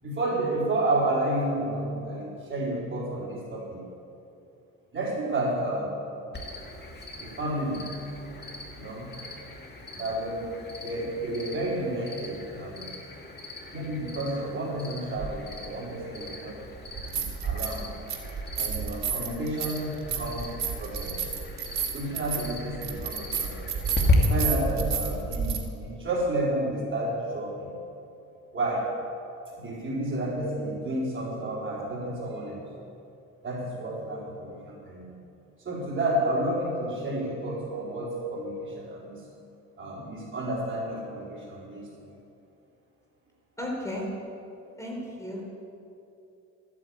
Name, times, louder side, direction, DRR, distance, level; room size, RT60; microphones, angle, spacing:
voice 1, 0.0-3.9 4.9-6.0 7.2-8.0 8.7-9.1 9.9-10.5 10.8-12.9 13.7-16.6 17.0-17.9 18.5-21.2 21.9-23.7 24.2-27.8 28.5-28.9 29.5-32.7 33.4-35.2 35.6-39.2 39.8-42.1, right 1 dB, 40° right, -4 dB, 3.9 m, -31 dB
Cricket, 6.3-24.1, left 3 dB, 35° left, 2.5 m, -37 dB
sound 1, 15.2-15.3 16.9-17.8 18.1-25.6, right 6 dB, 65° right, 2.0 m, -31 dB
voice 2, 43.6-44.1 44.8-45.4, left 1 dB, 10° left, -2 dB, 4.3 m, -34 dB
13.5 x 9.3 x 8.6 m, 2.7 s
cardioid pair, 90°, 30 cm